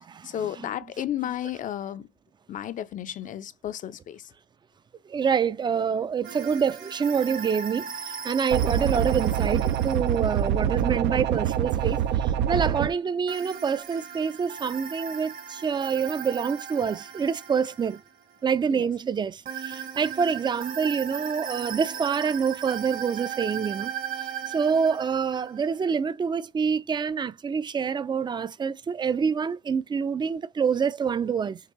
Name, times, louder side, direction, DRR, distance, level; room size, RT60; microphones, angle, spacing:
voice 1, 0.2-2.1 2.5-4.3 18.7-18.9, left 11 dB, 50° left, 0.5 m, -33 dB
voice 2, 5.1-7.9 8.2-12.0 12.5-18.0 18.4-23.9 24.5-31.6, right 6 dB, 25° right, 0.4 m, -26 dB
sound 1, 6.2-10.5 13.3-18.4 19.4-25.9, right 8 dB, 55° right, 1.4 m, -37 dB
sound 2, 8.5-12.9, right 10 dB, 85° right, 0.6 m, -25 dB
6.6 x 2.5 x 3.1 m
cardioid pair, 110°, 17 cm